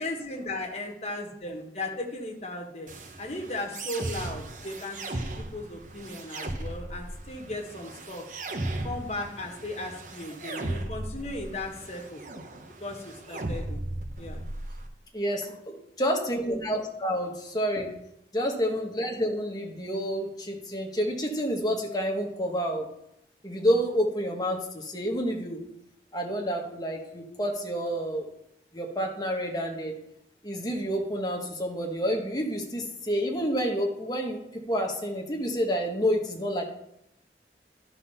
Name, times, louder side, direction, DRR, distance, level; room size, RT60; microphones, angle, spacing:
voice 1, 0.0-2.9 3.2-8.2 8.8-12.2 12.8-13.8 14.2-14.4, left 2 dB, 35° left, 0 dB, 1.4 m, -36 dB
sound 1, 2.9-14.9, right 2 dB, 45° right, 0.8 m, -37 dB
voice 2, 15.1-17.9 18.3-22.8 23.4-25.6 26.1-28.3 28.7-30.0 30.4-36.6, equal, 20° left, 0 dB, 1.3 m, -29 dB
11.5 x 4.1 x 5.6 m, 0.80 s
head